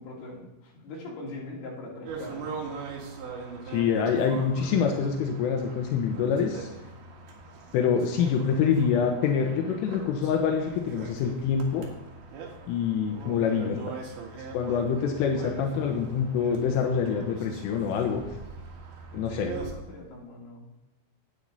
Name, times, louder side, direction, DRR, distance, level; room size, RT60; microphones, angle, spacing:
voice 1, 0.0-2.9 13.6-13.9 19.3-20.7, left 2 dB, 60° left, -4 dB, 4.8 m, -41 dB
sound 1, 2.1-19.7, right 4 dB, 70° right, 4.0 m, -41 dB
voice 2, 3.7-6.7 7.7-11.9 12.7-13.8 14.5-18.2 19.1-19.5, left 6 dB, 85° left, 2 dB, 3.5 m, -26 dB
10.0 x 9.4 x 4.0 m, 1.0 s
omnidirectional pair, 5.6 m